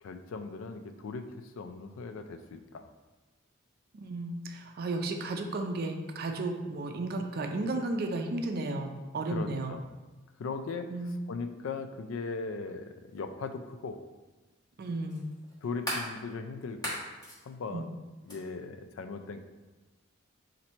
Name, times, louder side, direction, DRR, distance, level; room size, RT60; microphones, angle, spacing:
voice 1, 0.0-2.9 9.3-9.9 10.4-10.9 11.3-14.0 15.6-17.0 17.4-17.9 18.3-19.4, left 4 dB, 80° left, 8 dB, 0.4 m, -38 dB
voice 2, 3.9-9.7 10.9-11.2 14.8-15.2 17.7-17.8, right 2 dB, 50° right, 4 dB, 0.4 m, -33 dB
sound 1, 13.1-13.2 15.1-16.1 16.7-17.4 18.3-18.4, equal, 20° left, 1.2 m, -36 dB
4.3 x 2.6 x 4.2 m, 1.2 s
head